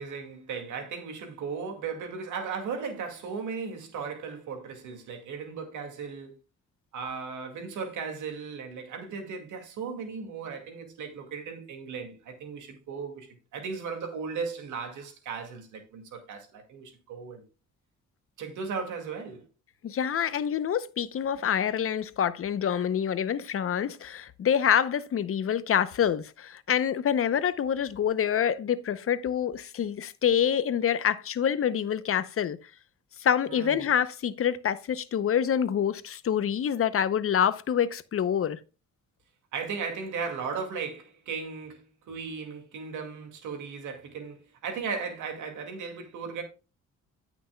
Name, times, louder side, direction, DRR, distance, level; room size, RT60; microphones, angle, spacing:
voice 1, 0.0-6.3 6.9-17.4 18.4-19.4 33.5-33.8 39.5-46.4, right 5 dB, 80° right, 2.2 m, -36 dB
voice 2, 19.8-32.6 33.2-38.6, left 8 dB, 45° left, 0.7 m, -26 dB
15.0 x 6.0 x 2.3 m
cardioid pair, 90°, 30 cm